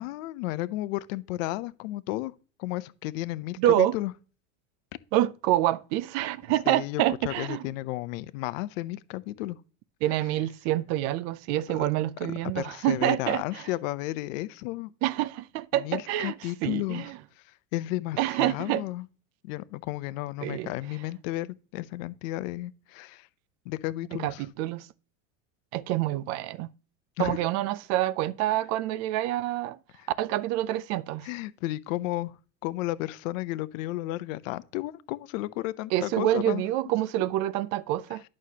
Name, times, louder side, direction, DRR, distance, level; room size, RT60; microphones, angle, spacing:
voice 1, 0.0-2.3 2.6-4.1 6.7-9.6 11.7-11.9 12.2-14.9 15.7-17.1 17.4-19.0 19.4-23.3 23.7-24.5 27.2-27.4 30.0-30.1 31.2-32.4 32.6-36.6 38.1-38.2, left 17 dB, 80° left, 0.7 m, -33 dB
voice 2, 3.6-3.9 5.1-7.7 10.0-13.6 15.0-16.3 16.6-17.2 18.2-18.8 20.4-20.7 24.1-24.9 25.7-26.7 27.2-29.8 30.2-31.3 35.9-38.2, right 14 dB, 45° right, 0.4 m, -27 dB
11.0 x 6.3 x 2.8 m
supercardioid pair, 150°, 39 cm